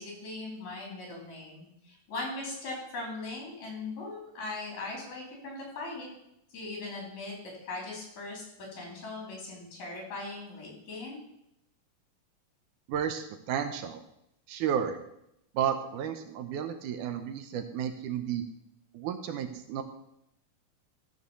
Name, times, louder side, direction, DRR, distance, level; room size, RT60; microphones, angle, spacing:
voice 1, 0.0-6.1 6.5-7.3 7.6-11.2, left 2 dB, 60° left, -1 dB, 4.6 m, -39 dB
voice 2, 12.9-14.0 14.5-15.0 15.6-18.4 18.9-19.8, right 8 dB, 75° right, 8 dB, 2.1 m, -32 dB
14.0 x 4.7 x 6.8 m, 0.81 s
omnidirectional pair, 3.8 m